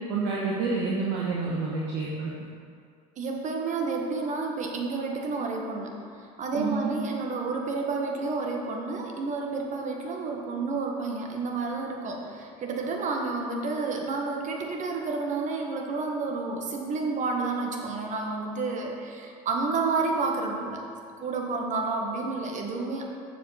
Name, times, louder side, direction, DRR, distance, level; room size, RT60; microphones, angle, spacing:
voice 1, 0.1-2.3 6.5-6.9, right 4 dB, 60° right, -4 dB, 1.3 m, -28 dB
voice 2, 3.2-5.9 6.2-20.8 21.2-23.0, right 3 dB, 40° right, 1 dB, 1.4 m, -30 dB
7.6 x 6.9 x 4.2 m, 2.3 s
hypercardioid pair, 90°, 20 cm